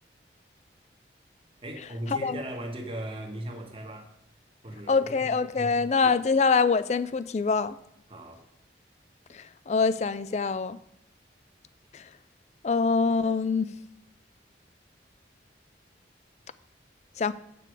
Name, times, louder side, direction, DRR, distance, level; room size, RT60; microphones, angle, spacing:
voice 1, 1.6-4.1 4.6-5.9 8.1-8.4, right 1 dB, 30° right, 3 dB, 1.3 m, -38 dB
voice 2, 4.9-7.8 9.3-10.8 11.9-12.0 12.6-13.7 17.2-17.3, left 4 dB, 35° left, 15 dB, 0.3 m, -25 dB
8.2 x 6.9 x 4.7 m, 0.76 s
head